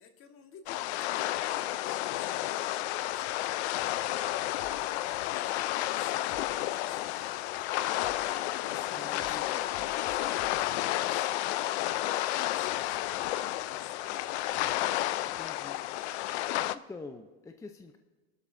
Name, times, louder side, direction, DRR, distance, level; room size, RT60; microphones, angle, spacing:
voice 1, 0.0-4.3 5.1-7.2 8.6-10.3 10.7-14.3, left 6 dB, 40° left, 6 dB, 1.5 m, -51 dB
sound 1, 0.7-16.8, left 15 dB, 80° left, 0.6 m, -31 dB
sound 2, 4.6-11.4, left 7 dB, 55° left, 2.0 m, -55 dB
voice 2, 8.9-9.6 15.2-15.8 16.7-18.0, left 3 dB, 10° left, 6 dB, 0.5 m, -46 dB
26.0 x 12.0 x 2.6 m, 1.2 s
supercardioid pair, 125°, 33 cm